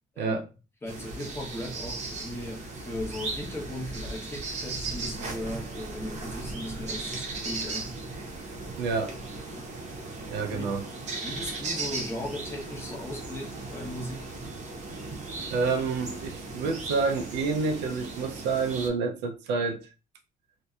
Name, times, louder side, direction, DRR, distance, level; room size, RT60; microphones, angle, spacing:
voice 1, 0.8-8.0 9.5-9.8 10.5-10.7 11.2-14.3, left 1 dB, 15° left, 0.9 m, -37 dB
sound 1, 0.9-18.9, right 3 dB, 45° right, 0.7 m, -37 dB
voice 2, 8.8-9.2 10.2-10.8 15.5-19.9, right 4 dB, 85° right, 0.5 m, -28 dB
2.6 x 2.2 x 2.3 m
cardioid pair, 110°, 17 cm